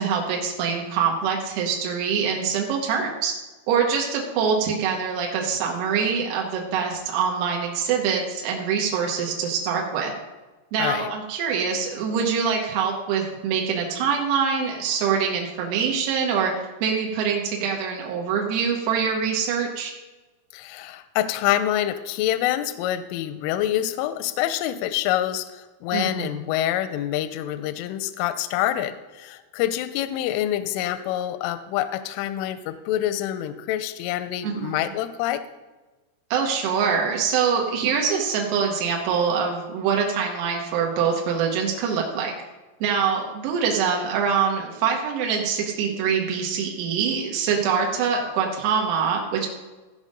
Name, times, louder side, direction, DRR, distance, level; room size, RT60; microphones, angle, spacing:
voice 1, 0.0-3.3 3.7-10.1 10.7-16.5 16.8-19.9 25.9-26.3 34.4-34.8 36.3-42.3 42.8-49.5, right 6 dB, 90° right, 0 dB, 4.0 m, -24 dB
voice 2, 20.5-35.4, left 12 dB, 85° left, 11 dB, 2.9 m, -26 dB
16.0 x 5.4 x 5.2 m, 1.2 s
omnidirectional pair, 6.0 m